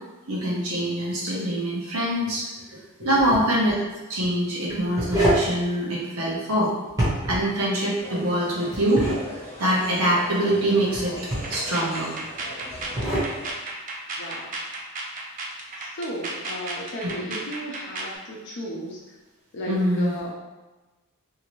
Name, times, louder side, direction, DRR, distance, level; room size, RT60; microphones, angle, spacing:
voice 1, 0.3-2.5 2.7-3.7 4.1-6.7 7.3-9.0 9.6-11.2 11.5-12.1 17.0-17.1 19.7-20.2, right 1 dB, 70° right, -4 dB, 0.7 m, -24 dB
voice 2, 3.0-3.4 14.2-14.6 15.8-19.0 19.5-20.3, equal, 55° left, -3 dB, 0.6 m, -34 dB
sound 1, 3.2-3.4 4.7-5.5 6.9-7.5 8.7-9.2 10.9-11.6 12.7-13.3, right 1 dB, 15° right, 0.8 m, -25 dB
sound 2, 8.0-13.5, left 1 dB, 30° left, 0.9 m, -40 dB
sound 3, 11.3-18.2, right 2 dB, 35° right, 0.4 m, -34 dB
2.7 x 2.5 x 3.0 m, 1.2 s
head